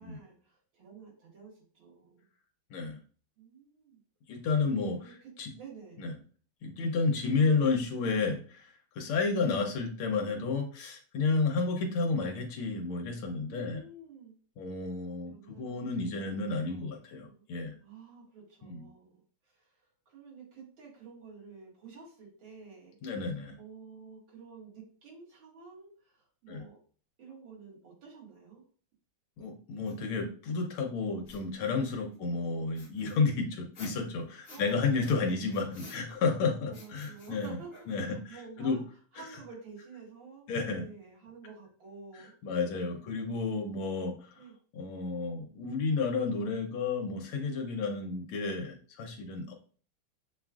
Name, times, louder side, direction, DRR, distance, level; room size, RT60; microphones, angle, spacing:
voice 1, 0.0-2.3 3.4-4.0 4.8-5.1 5.6-6.0 9.4-9.5 13.5-14.4 15.3-17.5 17.8-23.0 23.6-26.8 27.2-28.6 32.1-32.4 34.5-35.7 36.7-38.8 39.1-42.4 42.9-44.1 44.3-44.5, right 5 dB, 65° right, -4 dB, 2.4 m, -51 dB
voice 2, 4.3-5.5 6.0-6.1 6.6-13.8 14.6-17.7 18.6-18.9 23.0-23.6 26.5-26.6 29.4-37.6 37.9-38.8 39.1-39.3 40.5-40.8 42.4-44.4 44.7-49.5, left 4 dB, 80° left, 2 dB, 1.6 m, -31 dB
sound 1, 29.8-29.9 31.2-32.2 32.8-34.8 35.0-36.4 36.7-38.2, left 2 dB, 40° left, 0.9 m, -53 dB
7.1 x 2.4 x 2.4 m, 0.41 s
omnidirectional pair, 2.3 m